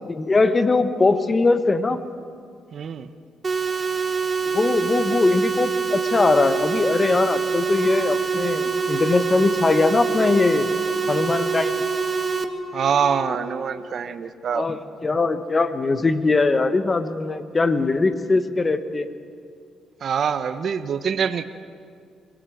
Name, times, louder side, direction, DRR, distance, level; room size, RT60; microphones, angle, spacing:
voice 1, 0.1-2.0 4.4-10.7 11.1-11.7 14.5-19.1, left 3 dB, 30° left, 11 dB, 1.4 m, -21 dB
voice 2, 2.7-3.1 12.7-14.7 20.0-21.4, right 7 dB, 55° right, 11 dB, 1.0 m, -24 dB
sound 1, 3.4-12.4, right 5 dB, 35° right, 1.7 m, -25 dB
Wind instrument woodwind instrument, 7.5-13.7, left 3 dB, 75° left, 2.7 m, -36 dB
25.0 x 18.0 x 7.9 m, 2.2 s
cardioid pair, 90°, 0 cm